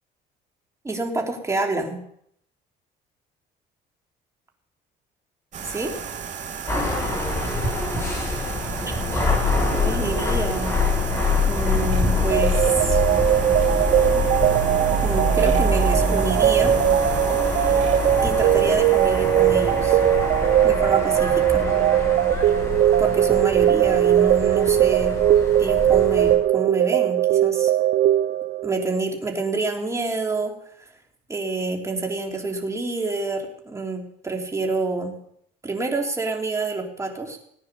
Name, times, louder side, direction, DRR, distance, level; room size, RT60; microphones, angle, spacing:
voice 1, 0.8-2.0 5.7-5.9 9.7-10.8 11.5-13.0 15.0-16.7 17.5-17.9 18.2-20.0 20.6-21.7 23.0-25.1 25.6-27.7 28.6-30.5 31.3-35.2 35.6-37.4, right 3 dB, 15° right, 1 dB, 3.5 m, -27 dB
sound 1, 5.5-20.9, right 6 dB, 45° right, 3.1 m, -35 dB
sound 2, 6.7-26.4, left 2 dB, 15° left, 6.8 m, -25 dB
sound 3, 12.3-28.9, right 12 dB, 60° right, 0.7 m, -20 dB
18.5 x 9.6 x 7.0 m, 0.71 s
cardioid pair, 110°, 17 cm